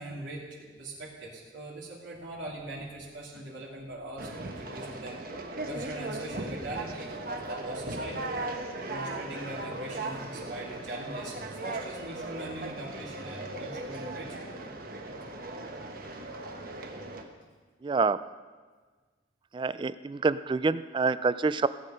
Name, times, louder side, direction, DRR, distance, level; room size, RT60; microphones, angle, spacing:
voice 1, 0.0-5.2 5.7-8.3 8.9-14.5, right 2 dB, 80° right, -5 dB, 3.0 m, -41 dB
Conversation, 4.2-17.2, right 2 dB, 50° right, 1.2 m, -38 dB
voice 2, 17.8-18.3 19.5-21.7, right 4 dB, 25° right, 15 dB, 0.3 m, -27 dB
16.5 x 8.6 x 5.1 m, 1.4 s
head